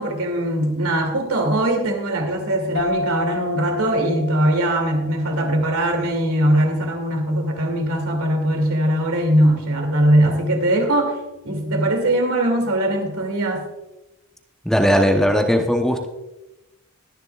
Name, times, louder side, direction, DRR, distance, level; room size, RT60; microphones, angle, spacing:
voice 1, 0.0-11.2 11.4-13.7, right 1 dB, 70° right, 3 dB, 2.6 m, -20 dB
sound 1, 2.8-6.1, left 1 dB, 60° left, 3.8 m, -30 dB
voice 2, 14.6-16.1, equal, ahead, 3 dB, 0.8 m, -18 dB
21.5 x 10.5 x 2.4 m, 1.0 s
head